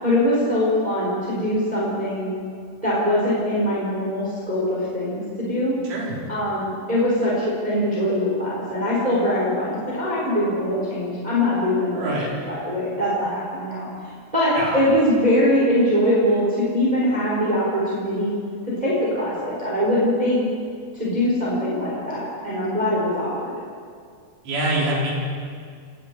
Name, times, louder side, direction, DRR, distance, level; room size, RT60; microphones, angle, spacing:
voice 1, 0.0-2.3 2.8-5.7 6.3-13.9 14.3-18.3 18.8-20.4 20.9-23.5, left 1 dB, 10° right, -7 dB, 4.8 m, -22 dB
voice 2, 5.9-6.2 11.9-12.3 14.5-14.8 24.5-25.1, right 1 dB, 70° right, -4 dB, 7.2 m, -25 dB
28.0 x 20.0 x 4.9 m, 2.1 s
omnidirectional pair, 5.6 m